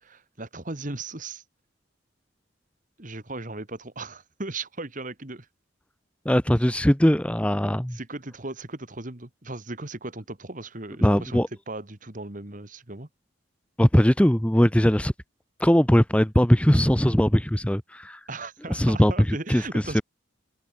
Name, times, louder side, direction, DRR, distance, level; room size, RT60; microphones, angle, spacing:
voice 1, 0.0-1.4 3.0-5.5 7.9-13.1 18.3-20.0, right 2 dB, 40° right, 2.0 m, -37 dB
voice 2, 6.2-8.0 11.0-11.5 13.8-15.1 15.6-18.2 18.7-20.0, equal, 5° left, 0.9 m, -20 dB
open air
head